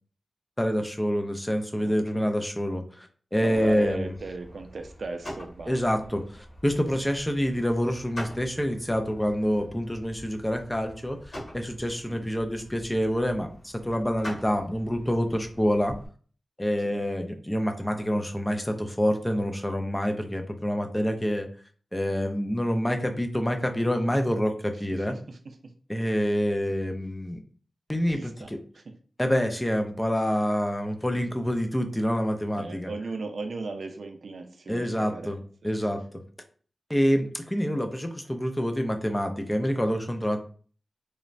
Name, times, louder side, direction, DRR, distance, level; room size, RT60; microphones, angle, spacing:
voice 1, 0.6-4.1 5.7-13.5 13.8-15.9 16.6-21.5 21.9-25.2 25.9-27.4 27.9-28.6 29.2-32.9 34.7-35.4 35.6-36.0 36.9-40.4, equal, 10° left, 5 dB, 0.4 m, -27 dB
voice 2, 1.8-2.3 3.4-5.8 12.1-12.3 16.8-17.0 24.9-25.6 28.1-28.8 32.6-36.2, right 3 dB, 65° right, 6 dB, 0.4 m, -38 dB
sound 1, 3.5-16.1, equal, 65° left, 1.3 m, -45 dB
3.0 x 2.0 x 2.5 m, 0.43 s
wide cardioid pair, 95°, 0 cm